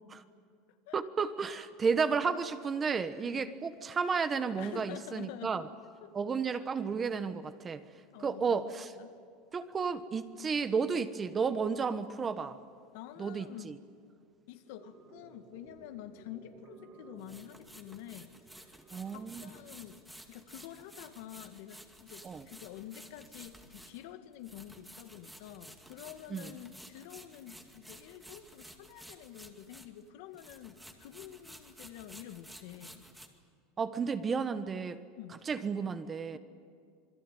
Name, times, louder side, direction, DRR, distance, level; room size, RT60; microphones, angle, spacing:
voice 1, 0.9-5.6 6.1-7.8 8.2-8.9 9.5-12.6 13.2-13.8 18.9-19.5 22.2-22.5 26.3-26.5 33.8-35.0 35.5-36.4, right 5 dB, 20° right, 11 dB, 1.2 m, -32 dB
voice 2, 4.6-5.7 6.0-6.1 8.1-9.2 12.9-13.8 14.5-18.3 18.7-18.8 19.1-20.0 20.3-33.1 35.2-35.3 36.3-36.4, left 12 dB, 70° left, 8 dB, 1.9 m, -48 dB
sound 1, 14.7-19.7, right 4 dB, 40° right, 4.9 m, -57 dB
sound 2, 15.8-15.9 17.2-30.1 30.3-33.3, right 1 dB, 5° right, 2.3 m, -53 dB
27.0 x 21.0 x 9.2 m, 2.2 s
supercardioid pair, 140°, 0 cm